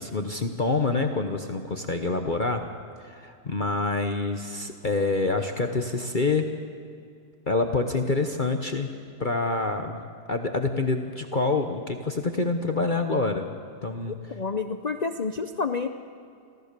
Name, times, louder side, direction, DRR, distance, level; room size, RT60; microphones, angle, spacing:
voice 1, 0.0-2.7 3.0-6.5 7.5-8.9 9.2-10.0 10.3-13.5 13.8-14.4, left 3 dB, 35° left, 5 dB, 0.9 m, -26 dB
voice 2, 14.3-15.9, left 4 dB, 80° left, 8 dB, 0.3 m, -29 dB
27.5 x 15.0 x 6.8 m, 2.4 s
omnidirectional pair, 1.8 m